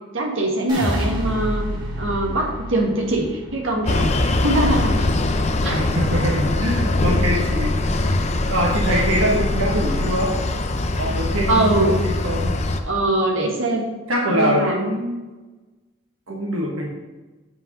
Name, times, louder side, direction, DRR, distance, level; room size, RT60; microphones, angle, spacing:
voice 1, 0.1-1.6 2.0-5.1 5.6-5.8 7.0-7.1 11.5-11.9 12.9-13.8 14.3-14.8, right 1 dB, 70° right, 0 dB, 1.6 m, -22 dB
sound 1, 0.7-6.9 7.2-7.8, equal, 25° right, 2.2 m, -30 dB
sound 2, 3.8-12.8, left 2 dB, 30° left, 0.6 m, -22 dB
voice 2, 5.7-7.9 8.5-10.4 11.0-12.5 14.1-15.2 16.3-16.9, equal, 90° right, -2 dB, 1.3 m, -23 dB
7.9 x 5.7 x 5.2 m, 1.2 s
head